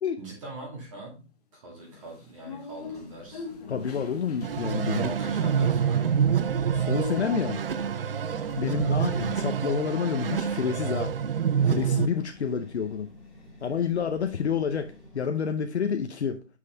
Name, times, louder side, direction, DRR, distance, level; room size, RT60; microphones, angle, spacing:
voice 1, 0.2-3.5 5.0-6.2 8.6-9.0, right 2 dB, 30° right, 2.3 m, -42 dB
sound 1, 1.9-7.7, left 4 dB, 35° left, 1.2 m, -42 dB
sound 2, 2.8-15.2, left 1 dB, ahead, 0.9 m, -50 dB
voice 2, 3.7-5.1 5.6-5.7 6.7-7.6 8.6-11.2 11.6-13.1 13.6-16.5, left 7 dB, 70° left, 0.8 m, -29 dB
sound 3, 4.4-12.1, right 7 dB, 55° right, 0.5 m, -27 dB
6.6 x 5.3 x 3.4 m
hypercardioid pair, 160°, 35 cm